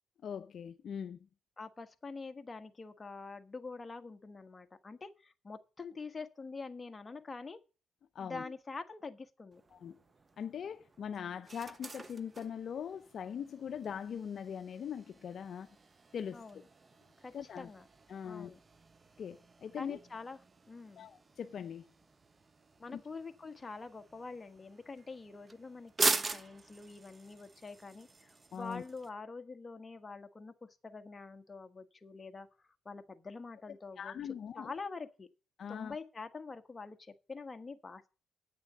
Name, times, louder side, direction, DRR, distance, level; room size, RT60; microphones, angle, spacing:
voice 1, 0.2-1.2 8.1-8.5 9.7-10.0 10.4-15.8 16.1-16.4 17.3-17.7 18.1-18.5 19.2-20.0 21.0-21.9 22.9-23.0 28.5-28.8 34.0-34.7 35.6-36.0, left 8 dB, 60° left, 0.6 m, -41 dB
voice 2, 1.6-7.6 8.2-9.6 16.3-16.6 17.2-17.9 18.2-18.6 19.8-20.4 20.7-21.1 22.8-32.5 32.8-34.1 34.5-35.3 35.7-38.1, left 4 dB, 25° left, 1.4 m, -46 dB
sound 1, 9.5-29.1, right 3 dB, 30° right, 0.9 m, -43 dB
9.2 x 6.9 x 7.7 m
cardioid pair, 90°, 0 cm